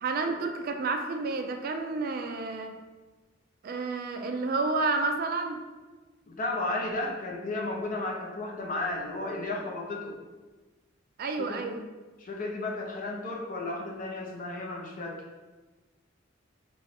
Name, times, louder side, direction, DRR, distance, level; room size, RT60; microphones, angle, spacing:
voice 1, 0.0-2.8 3.6-5.6 11.2-11.8, right 3 dB, 50° right, 6 dB, 0.4 m, -30 dB
voice 2, 6.3-10.1 11.4-11.7 12.2-15.2, left 2 dB, 45° left, 0 dB, 0.6 m, -33 dB
4.5 x 3.0 x 2.8 m, 1.2 s
head